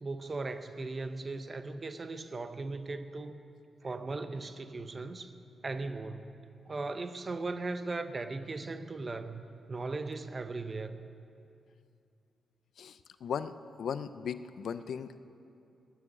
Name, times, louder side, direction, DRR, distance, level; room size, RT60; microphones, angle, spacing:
voice 1, 0.0-3.4 3.8-5.3 5.6-6.3 6.7-11.0, right 3 dB, 30° right, 10 dB, 0.6 m, -38 dB
voice 2, 12.8-13.5 13.8-15.2, left 7 dB, 70° left, 13 dB, 0.5 m, -37 dB
15.0 x 7.0 x 9.8 m, 2.6 s
wide cardioid pair, 140°, 0 cm